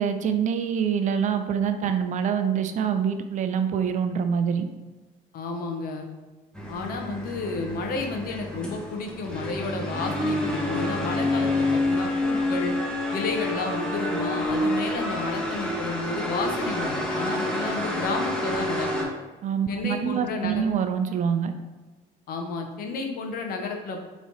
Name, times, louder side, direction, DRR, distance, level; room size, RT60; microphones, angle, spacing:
voice 1, 0.0-4.7 19.4-21.5, right 7 dB, 50° right, 8 dB, 0.4 m, -25 dB
voice 2, 5.3-6.1 6.7-12.7 13.1-19.1 19.7-20.7 22.3-24.0, left 3 dB, 65° left, 4 dB, 0.7 m, -31 dB
sound 1, 6.6-19.1, left 1 dB, 5° left, 0.8 m, -28 dB
4.8 x 3.1 x 2.7 m, 1.3 s
cardioid pair, 100°, 16 cm